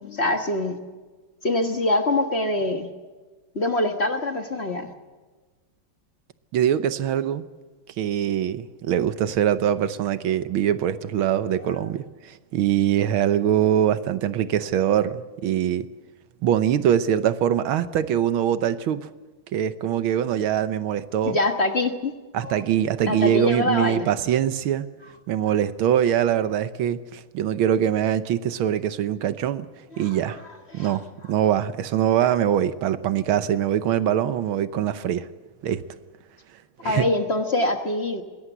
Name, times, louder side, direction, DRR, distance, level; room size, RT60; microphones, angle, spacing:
voice 1, 0.0-0.8 1.4-2.9 3.5-4.9 21.2-22.1 22.4-22.6 23.0-24.1 29.9-30.2 30.7-31.0 36.8-38.2, left 2 dB, 35° left, 1.4 m, -24 dB
voice 2, 6.5-7.4 8.0-15.9 16.4-19.1 19.5-21.4 22.3-24.9 25.3-29.7 30.0-30.4 30.7-35.3 35.6-35.8 36.8-37.1, right 10 dB, 80° right, 1.7 m, -23 dB
21.5 x 17.0 x 8.0 m
omnidirectional pair, 2.3 m